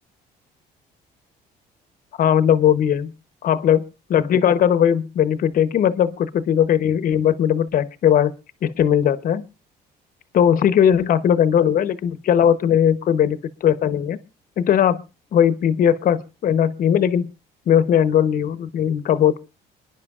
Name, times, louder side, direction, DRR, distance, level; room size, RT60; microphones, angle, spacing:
voice 1, 2.2-3.1 3.4-3.8 4.1-8.3 8.6-9.4 10.3-14.2 14.6-15.0 15.3-17.3 17.7-19.4, left 9 dB, 55° left, 14 dB, 0.8 m, -18 dB
28.5 x 10.5 x 2.4 m, 0.30 s
cardioid pair, 110°, 17 cm